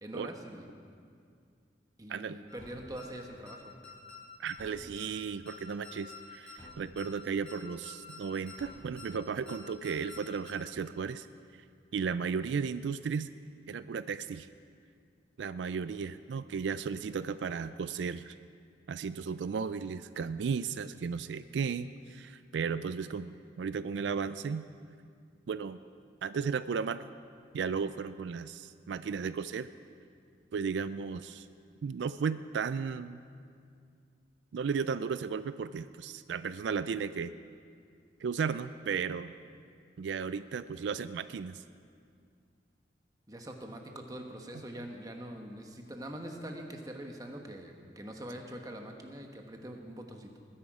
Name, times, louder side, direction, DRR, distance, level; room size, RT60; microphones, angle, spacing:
voice 1, 0.0-0.7 2.0-3.8 43.3-50.4, right 1 dB, 20° right, 3 dB, 1.2 m, -44 dB
sound 1, 2.5-2.7 3.0-3.1 3.5-3.6 3.8-4.2 4.5-4.7 5.0-5.1 5.5-5.6 5.8-6.2 6.5-6.7 7.0-7.1 7.5-7.6 7.8-8.2 8.5-8.7 9.0-9.1 9.5-9.6 9.8-10.2 10.5-10.6, left 4 dB, 5° left, 3.8 m, -48 dB
voice 2, 4.4-11.3 11.9-13.3 13.7-14.5 15.4-18.3 18.9-24.6 25.5-25.8 26.2-27.1 27.5-29.7 30.5-31.5 31.8-33.2 34.5-37.3 38.2-39.3 40.0-41.6, right 6 dB, 85° right, 14 dB, 0.4 m, -35 dB
20.0 x 10.0 x 4.9 m, 2.2 s
head